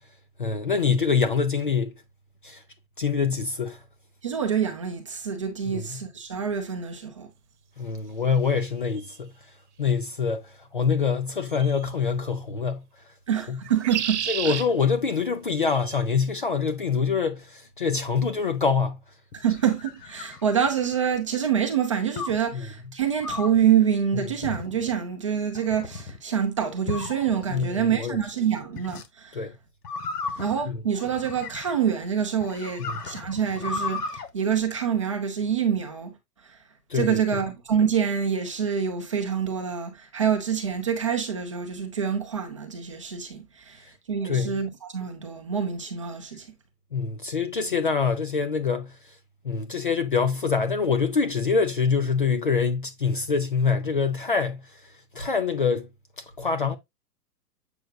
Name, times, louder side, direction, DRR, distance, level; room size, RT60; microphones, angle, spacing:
voice 1, 0.4-1.9 2.4-2.6 3.0-3.8 5.7-6.0 7.8-9.3 9.8-12.8 13.5-13.6 14.3-19.0 22.5-22.6 27.5-28.2 29.3-29.5 32.9-33.0 36.9-37.2 44.2-44.6 46.9-48.9 49.4-54.6 55.1-55.9 56.4-56.8, left 5 dB, 35° left, 0.5 m, -25 dB
voice 2, 4.2-7.3 13.3-14.5 19.3-29.4 30.4-36.1 36.9-46.5, right 8 dB, 20° right, 0.7 m, -26 dB
sound 1, 9.0-9.1 11.5-11.9 13.6-14.7 15.6-16.0, right 10 dB, 45° right, 1.1 m, -31 dB
sound 2, 19.3-21.1 22.2-22.5 23.2-23.6 24.4-24.9 25.5-26.2 26.9-27.6 28.8-29.1 29.8-31.9 32.4-34.3, left 4 dB, 70° left, 1.7 m, -35 dB
7.9 x 5.7 x 2.3 m
hypercardioid pair, 180°, 48 cm